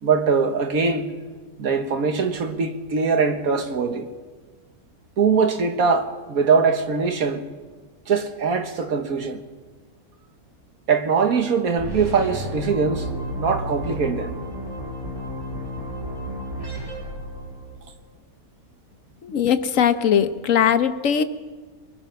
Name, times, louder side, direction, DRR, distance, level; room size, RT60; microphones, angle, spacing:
voice 1, 0.0-1.1 1.6-4.1 5.2-7.4 8.1-9.4 10.9-13.1 13.4-14.3, right 5 dB, 70° right, 1.8 m, -22 dB
sound 1, 11.8-17.9, right 1 dB, 15° right, 4.9 m, -32 dB
voice 2, 19.2-21.2, left 8 dB, 65° left, 1.3 m, -20 dB
21.5 x 20.5 x 5.9 m
omnidirectional pair, 1.5 m